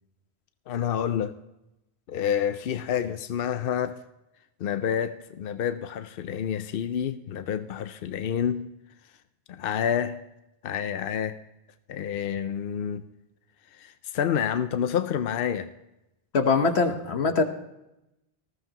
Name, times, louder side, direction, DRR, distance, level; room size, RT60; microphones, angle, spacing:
voice 1, 0.7-1.3 2.1-4.0 4.6-8.7 9.5-10.2 10.6-11.4 11.9-13.0 13.7-15.7, left 8 dB, 65° left, 0.8 m, -28 dB
voice 2, 16.3-17.4, left 4 dB, 85° left, 1.4 m, -22 dB
19.0 x 15.0 x 2.9 m
omnidirectional pair, 1.1 m